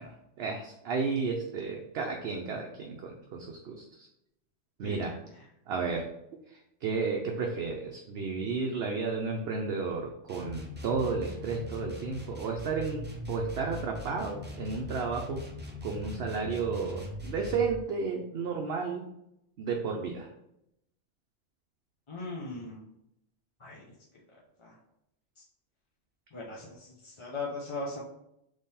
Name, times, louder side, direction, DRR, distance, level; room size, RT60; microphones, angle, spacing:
voice 1, 0.0-4.1 4.8-5.1 5.7-6.1 6.8-15.4 15.8-19.1 19.6-20.3, right 4 dB, 65° right, 1 dB, 0.8 m, -32 dB
sound 1, 10.3-17.8, left 2 dB, 15° right, 0.4 m, -41 dB
voice 2, 22.1-22.8 23.6-23.8 24.6-24.7 26.3-28.0, left 3 dB, 30° left, -5 dB, 0.6 m, -38 dB
3.6 x 3.2 x 4.1 m, 0.81 s
omnidirectional pair, 1.2 m